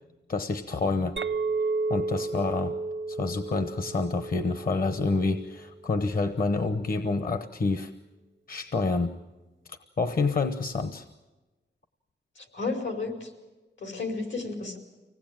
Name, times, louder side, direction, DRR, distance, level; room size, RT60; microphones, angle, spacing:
voice 1, 0.3-1.2 1.9-2.8 3.1-7.9 8.5-9.2 9.7-11.0, left 3 dB, 50° left, 10 dB, 1.0 m, -28 dB
Chink clink, 1.2-5.7, right 3 dB, 90° right, 0.8 m, -32 dB
voice 2, 12.4-13.3 13.8-14.8, left 3 dB, 80° left, 4 dB, 5.0 m, -32 dB
25.0 x 18.5 x 8.9 m, 1.2 s
wide cardioid pair, 145°, 19 cm